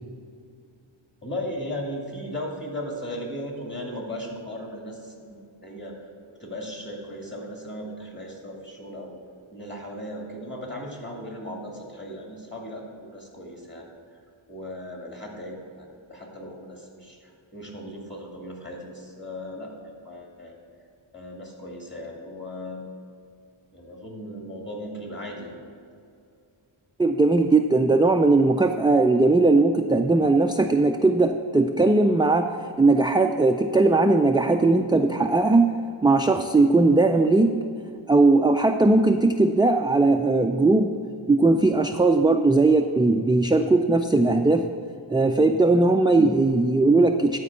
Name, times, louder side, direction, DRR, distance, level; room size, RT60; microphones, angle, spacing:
voice 1, 1.2-6.0 6.3-9.1 9.5-13.9 14.5-20.6 21.1-22.9 23.7-25.6 45.4-45.7, left 1 dB, 20° left, -1 dB, 2.3 m, -37 dB
voice 2, 27.0-37.7 38.1-41.0 41.3-44.7 45.1-47.4, right 2 dB, 10° right, 5 dB, 0.3 m, -19 dB
11.0 x 4.6 x 7.1 m, 2.4 s
wide cardioid pair, 50°, 49 cm